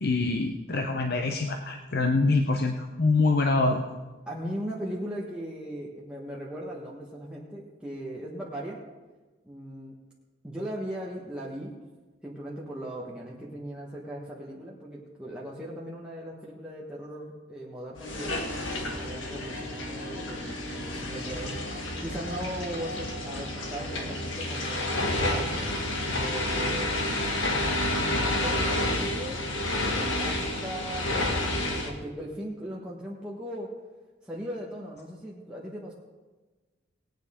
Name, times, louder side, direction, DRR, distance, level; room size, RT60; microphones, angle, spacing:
voice 1, 0.0-3.8, left 3 dB, 55° left, 3 dB, 0.7 m, -25 dB
voice 2, 4.3-8.8 9.4-9.9 10.4-11.7 12.2-18.4 18.9-21.5 22.0-25.5 26.1-26.9 27.9-29.4 30.2-33.7 34.2-35.9, right 1 dB, 5° right, -5 dB, 1.3 m, -38 dB
sound 1, 18.0-31.9, left 1 dB, 80° left, 1.7 m, -30 dB
19.0 x 9.0 x 3.7 m, 1.3 s
head